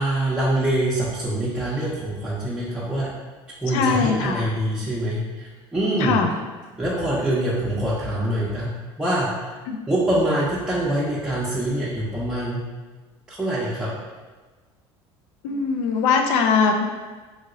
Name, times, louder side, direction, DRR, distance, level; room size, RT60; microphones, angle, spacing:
voice 1, 0.0-3.1 3.6-6.2 6.8-8.7 9.0-9.5 9.9-12.6 13.3-13.9, right 1 dB, 5° right, -8 dB, 0.6 m, -24 dB
voice 2, 3.7-4.5 6.0-6.3 9.7-9.8 15.4-16.8, left 5 dB, 70° left, 4 dB, 0.4 m, -21 dB
2.8 x 2.8 x 2.6 m, 1.3 s
hypercardioid pair, 80°, 14 cm